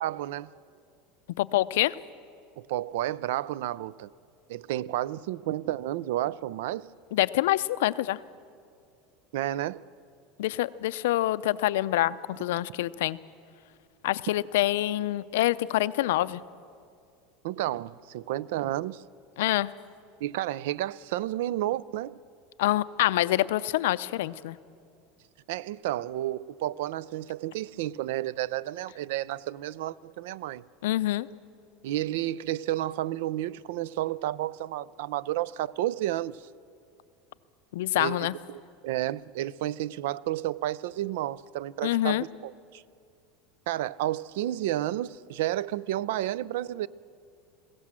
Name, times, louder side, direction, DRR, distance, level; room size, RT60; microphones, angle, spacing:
voice 1, 0.0-0.5 2.6-4.1 4.5-6.9 9.3-9.8 17.4-19.0 20.2-22.2 25.5-30.7 31.8-36.5 38.0-42.8 43.7-46.9, right 14 dB, 75° right, 0.4 m, -31 dB
voice 2, 1.4-1.9 7.1-8.2 10.4-13.2 14.0-16.4 19.4-19.7 22.6-24.6 30.8-31.3 37.7-38.3 41.8-42.2, left 15 dB, 85° left, 0.5 m, -26 dB
21.5 x 16.5 x 7.4 m
supercardioid pair, 165°, 0 cm